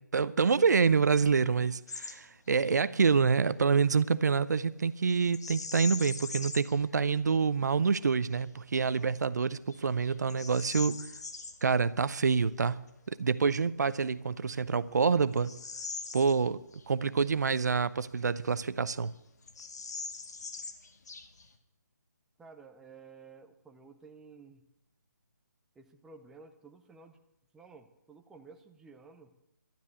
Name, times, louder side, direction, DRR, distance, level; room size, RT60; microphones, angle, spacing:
voice 1, 0.0-11.1 11.6-12.8 13.1-15.6 16.1-16.6 16.9-19.2, right 5 dB, 65° right, 0.7 m, -27 dB
Bird vocalization bird call bird song, 1.9-2.2 2.5-2.7 5.3-6.8 7.3-7.4 8.0-8.4 9.0-9.1 9.7-11.6 13.7-13.8 14.4-16.9 17.2-17.3 18.0-18.8 19.0-19.1 19.4-21.6, left 4 dB, 60° left, 2.0 m, -42 dB
voice 2, 22.4-24.6 25.7-27.2 27.5-29.3, right 4 dB, 5° right, 0.7 m, -53 dB
12.0 x 11.0 x 8.3 m
figure-of-eight pair, 155°, 10 cm